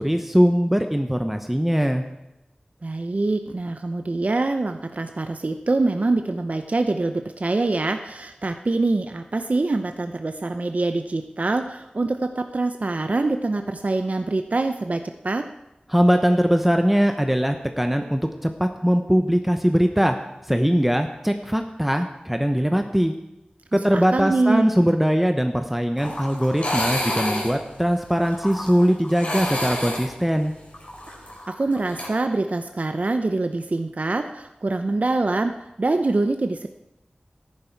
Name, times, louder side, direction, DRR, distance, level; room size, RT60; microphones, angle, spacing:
voice 1, 0.0-2.0 15.9-20.2 20.5-23.1 23.7-30.5, equal, 5° right, 6 dB, 0.8 m, -21 dB
voice 2, 2.8-15.5 23.7-24.7 31.5-35.5 35.8-36.7, right 2 dB, 55° right, 7 dB, 0.6 m, -24 dB
sound 1, 26.0-32.1, left 1 dB, 55° left, 4.1 m, -30 dB
14.5 x 10.5 x 4.6 m, 0.91 s
wide cardioid pair, 60°, 3 cm